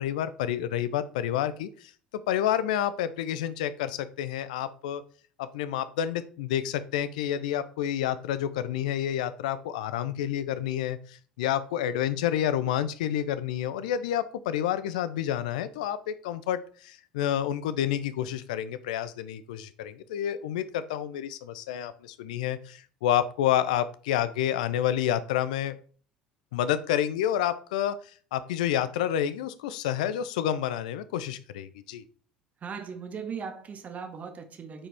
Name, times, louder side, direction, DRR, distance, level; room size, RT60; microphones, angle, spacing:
voice 1, 0.0-1.9 2.3-5.0 5.4-25.7 26.5-28.0 28.3-32.0, left 10 dB, 70° left, 0.5 m, -29 dB
voice 2, 32.6-34.9, right 6 dB, 35° right, 1.4 m, -38 dB
8.6 x 4.9 x 3.3 m
hypercardioid pair, 65°, 4 cm